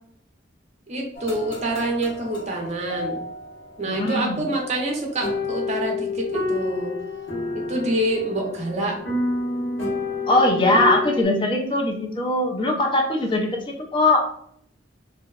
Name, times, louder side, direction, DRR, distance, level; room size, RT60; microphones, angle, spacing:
voice 1, 0.9-3.2 3.8-6.9 7.5-9.0, right 1 dB, 35° right, 0 dB, 0.6 m, -26 dB
sound 1, 1.1-11.2, left 3 dB, 90° left, 0.8 m, -30 dB
voice 2, 3.9-4.4 10.3-14.3, left 2 dB, 25° left, 1 dB, 0.4 m, -21 dB
2.7 x 2.1 x 2.3 m, 0.66 s
head